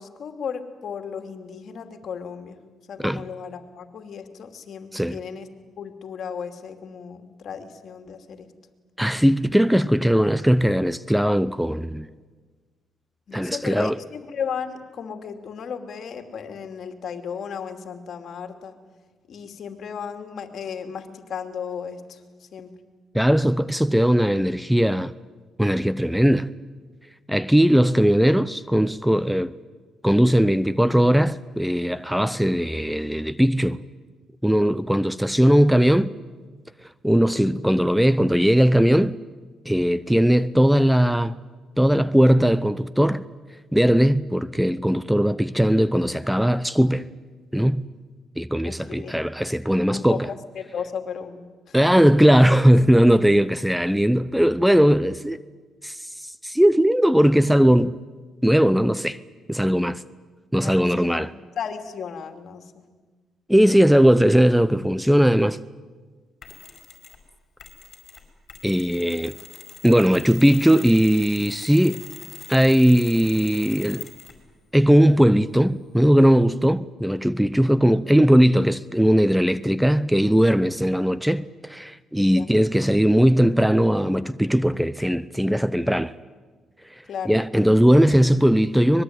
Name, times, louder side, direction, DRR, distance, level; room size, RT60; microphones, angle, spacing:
voice 1, 0.0-2.6 2.9-5.5 5.8-8.5 13.3-18.7 19.3-22.7 48.6-49.2 49.9-51.9 60.6-61.3 61.6-62.7 82.3-82.5 87.1-87.4 87.7-87.8, left 7 dB, 60° left, 2.8 m, -35 dB
voice 2, 9.0-12.1 13.3-14.0 23.1-25.1 25.6-26.5 27.3-29.5 30.0-33.8 34.4-36.1 37.0-39.2 39.7-41.4 41.8-43.2 43.7-47.1 47.5-47.9 48.4-50.3 51.7-55.4 55.8-57.9 58.4-59.2 59.5-60.0 60.5-61.3 63.5-65.6 68.6-69.4 69.8-72.0 72.5-74.1 74.7-86.1 86.9-89.0, equal, ahead, 0.7 m, -19 dB
Mechanisms, 66.4-67.2 67.6-74.5, left 7 dB, 45° left, 5.2 m, -42 dB
24.0 x 21.5 x 9.5 m
cardioid pair, 90°, 0 cm